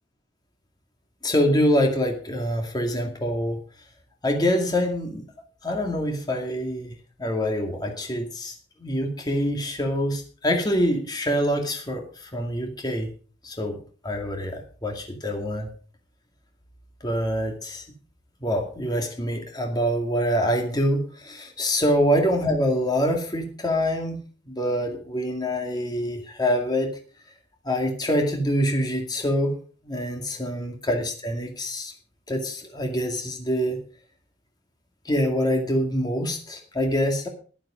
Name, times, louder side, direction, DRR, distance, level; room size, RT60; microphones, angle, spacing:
voice 1, 1.2-3.6 4.2-5.2 5.6-6.9 7.2-8.5 8.8-13.1 13.4-13.8 14.0-15.7 17.0-17.8 18.4-24.2 24.5-26.9 27.6-29.5 29.8-31.9 32.3-33.8 35.1-37.3, equal, 20° left, 3 dB, 2.3 m, -25 dB
12.5 x 11.5 x 5.1 m, 0.40 s
head